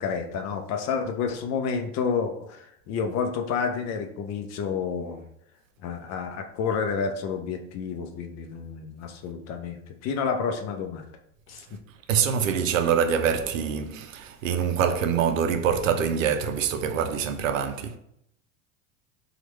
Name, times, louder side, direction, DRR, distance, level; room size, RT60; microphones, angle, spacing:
voice 1, 0.0-5.2 5.8-11.0 11.5-11.8, left 6 dB, 45° left, 0.6 m, -30 dB
voice 2, 12.1-18.0, right 7 dB, 85° right, 0.5 m, -25 dB
3.0 x 2.4 x 3.0 m
hypercardioid pair, 85°, 38 cm